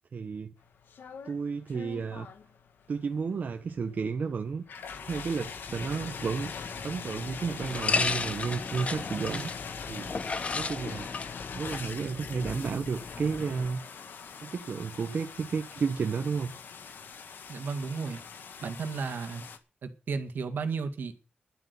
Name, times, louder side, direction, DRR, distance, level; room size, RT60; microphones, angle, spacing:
voice 1, 0.1-0.5 1.2-2.3 2.9-4.6 5.0-6.5 6.8-9.5 9.9-10.1 10.5-11.1 11.5-13.8 14.4-16.5, right 5 dB, 55° right, 5 dB, 1.1 m, -32 dB
sound 1, 0.6-19.6, left 6 dB, 90° left, 1.7 m, -43 dB
sound 2, 5.7-13.7, left 4 dB, 40° left, 1.0 m, -35 dB
voice 2, 17.5-18.2 18.6-19.4 19.8-21.1, right 5 dB, 75° right, 7 dB, 2.0 m, -33 dB
11.5 x 8.2 x 8.3 m, 0.36 s
wide cardioid pair, 130°, 3 cm